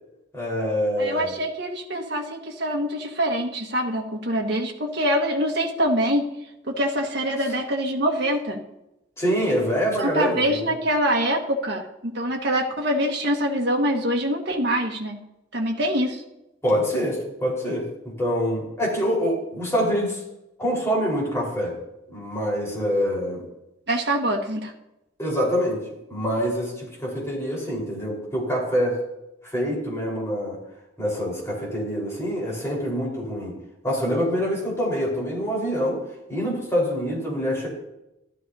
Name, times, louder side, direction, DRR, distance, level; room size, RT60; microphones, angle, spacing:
voice 1, 0.3-1.3 9.2-10.6 16.6-17.9 18.2-20.2 20.6-21.7 22.1-23.4 25.2-25.8 26.1-29.0 29.5-30.6 31.0-33.6 33.8-36.0 36.3-37.7, equal, 15° left, -4 dB, 4.4 m, -25 dB
voice 2, 1.0-6.3 6.7-8.6 10.0-15.2 15.5-16.2 23.9-24.7, equal, 60° right, 1 dB, 1.6 m, -24 dB
15.0 x 13.0 x 2.8 m, 0.90 s
head